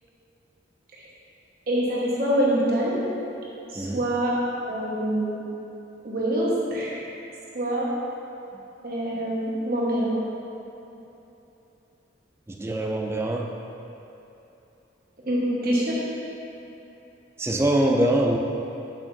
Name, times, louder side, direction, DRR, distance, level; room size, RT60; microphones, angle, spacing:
voice 1, 1.7-3.0 3.7-4.3 4.6-5.4 6.0-6.9 7.5-7.9 8.8-10.2 15.2-16.0, right 1 dB, 50° right, -6 dB, 1.3 m, -25 dB
voice 2, 12.5-13.5 17.4-18.4, right 1 dB, 15° right, 1 dB, 0.4 m, -23 dB
8.3 x 6.4 x 2.7 m, 3.0 s
head